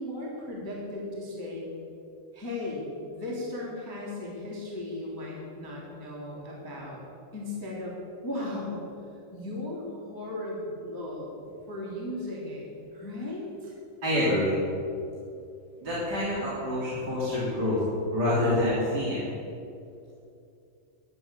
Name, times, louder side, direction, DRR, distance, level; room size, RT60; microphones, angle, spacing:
voice 1, 0.0-1.7 2.3-7.0 7.3-7.9 8.2-8.8 9.3-13.7, left 1 dB, 5° left, -4 dB, 1.7 m, -36 dB
voice 2, 14.0-14.6 15.8-17.8 18.1-19.2, left 1 dB, 25° right, -9 dB, 3.1 m, -26 dB
12.5 x 10.5 x 8.3 m, 2.6 s
omnidirectional pair, 5.7 m